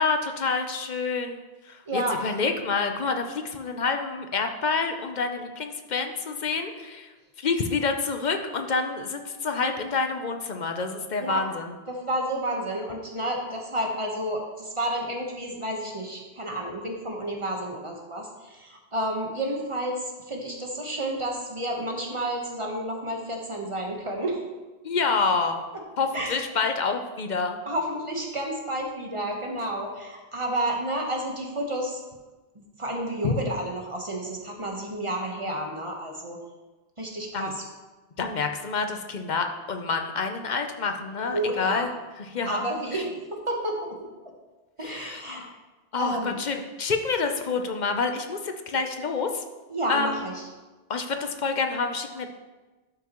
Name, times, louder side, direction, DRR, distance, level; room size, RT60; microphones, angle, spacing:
voice 1, 0.0-7.1 7.4-11.8 24.8-25.6 26.0-27.6 33.2-33.3 37.3-37.5 38.2-41.9 42.2-42.6 42.9-43.1 44.8-45.5 45.9-49.4 49.9-50.3 50.9-52.3, left 4 dB, 50° left, 5 dB, 0.7 m, -28 dB
voice 2, 1.9-2.2 11.2-11.4 11.9-24.4 26.1-26.4 27.7-32.0 32.5-36.4 37.0-37.6 41.2-41.9 42.5-44.0 44.8-45.4 46.0-46.4 49.7-50.4, right 1 dB, 30° right, 0 dB, 1.1 m, -30 dB
11.5 x 5.8 x 3.0 m, 1.2 s
omnidirectional pair, 1.1 m